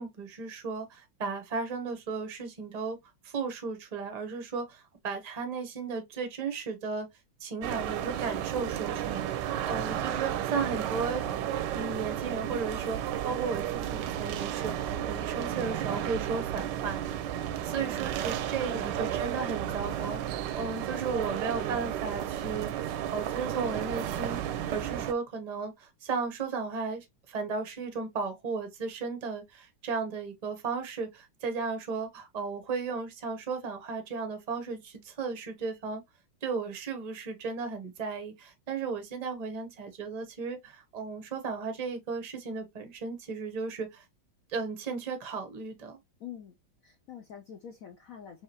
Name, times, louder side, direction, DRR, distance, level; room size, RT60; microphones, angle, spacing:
voice 1, 0.0-3.0 3.2-7.1 7.4-11.3 11.7-17.0 17.6-24.4 24.7-36.0 36.4-44.0 44.5-46.0, right 4 dB, 40° right, 0.5 m, -35 dB
sound 1, 7.6-25.1, right 10 dB, 70° right, 1.1 m, -33 dB
voice 2, 17.6-18.0 18.7-18.9 46.2-46.5 46.8-48.4, left 8 dB, 80° left, 0.7 m, -46 dB
4.7 x 2.9 x 2.8 m
omnidirectional pair, 2.2 m